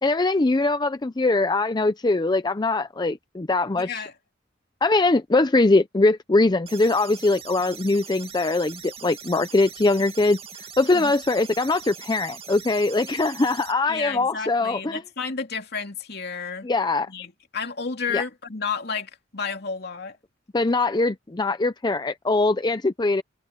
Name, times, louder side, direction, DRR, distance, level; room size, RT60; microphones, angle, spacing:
voice 1, 0.0-4.0 4.8-10.4 10.8-15.0 16.6-17.1 18.1-18.2 20.5-23.2, left 2 dB, 20° left, 0.5 m, -22 dB
voice 2, 3.7-4.1 10.9-11.1 13.9-16.7 17.1-20.2, left 5 dB, 55° left, 2.8 m, -31 dB
sound 1, 6.7-13.7, right 7 dB, 30° right, 2.4 m, -42 dB
head